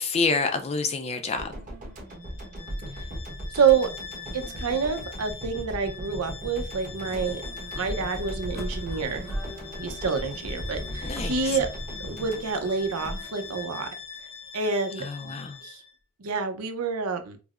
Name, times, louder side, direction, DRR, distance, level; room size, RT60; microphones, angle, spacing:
voice 1, 0.0-1.5 11.0-11.6 15.0-15.6, left 4 dB, 30° left, 0.4 m, -28 dB
sound 1, 1.4-13.6 13.8-14.0, equal, 35° right, 1.0 m, -38 dB
Bowed string instrument, 2.1-16.0, left 6 dB, 75° left, 0.7 m, -42 dB
voice 2, 3.5-3.9 4.3-7.4 7.7-9.3 9.8-11.7 12.0-13.9 14.5-15.3 15.6-15.8 16.2-17.4, right 5 dB, 90° right, 0.6 m, -27 dB
sound 2, 7.1-13.6, equal, ahead, 0.8 m, -41 dB
4.6 x 2.0 x 2.4 m
head